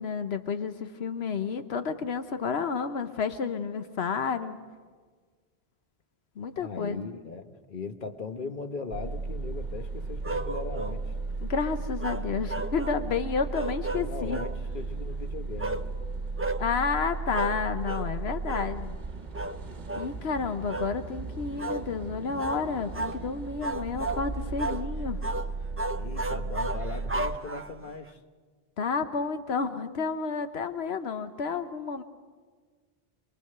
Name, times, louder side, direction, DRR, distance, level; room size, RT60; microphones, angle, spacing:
voice 1, 0.0-4.6 6.4-7.0 11.4-14.4 16.6-19.0 20.0-25.2 28.8-32.0, left 5 dB, 85° left, 9 dB, 1.2 m, -31 dB
voice 2, 6.6-11.1 13.9-15.9 26.0-28.2, left 4 dB, 55° left, 7 dB, 1.3 m, -39 dB
sound 1, 8.9-27.4, right 3 dB, 45° right, 1.1 m, -35 dB
sound 2, 10.2-11.0 12.0-13.0 13.5-14.6 15.6-15.9 16.4-16.6 17.3-17.6 17.9-18.1 18.5-18.7 19.3-19.6 19.9-20.1 20.7-21.0 21.6-21.8 22.4-22.6 22.9-23.2 23.6-24.3 24.6-24.8 25.2-25.5 25.8-27.9, right 2 dB, 15° right, 0.6 m, -33 dB
26.5 x 21.5 x 6.7 m, 1.5 s
omnidirectional pair, 1.0 m